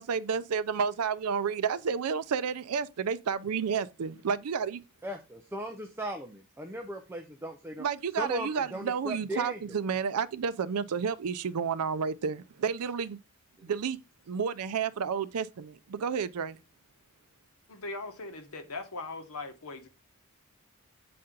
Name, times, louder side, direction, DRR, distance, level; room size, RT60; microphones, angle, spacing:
voice 1, 0.0-4.8 7.8-13.2 13.6-14.0 14.3-16.6, right 6 dB, 85° right, 0.5 m, -31 dB
voice 2, 5.0-7.9 8.2-9.8, equal, 10° right, 0.6 m, -37 dB
voice 3, 17.7-19.9, left 3 dB, 75° left, 1.2 m, -40 dB
7.6 x 4.3 x 3.7 m
head